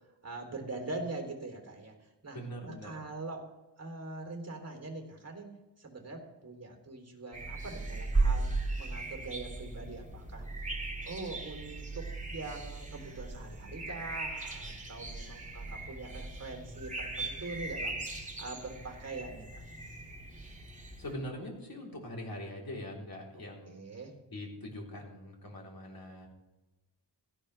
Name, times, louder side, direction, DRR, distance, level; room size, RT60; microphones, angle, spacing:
voice 1, 0.2-2.4 2.6-3.5 3.8-8.5 8.8-10.5 11.1-19.6 23.7-24.1, right 3 dB, 35° right, 1 dB, 3.1 m, -43 dB
voice 2, 2.3-2.9 21.0-23.8 24.3-26.3, left 1 dB, 50° left, -1 dB, 3.6 m, -42 dB
sound 1, 7.3-21.1, right 3 dB, 15° right, 2.1 m, -37 dB
16.5 x 13.5 x 3.3 m, 1.1 s
wide cardioid pair, 120°, 45 cm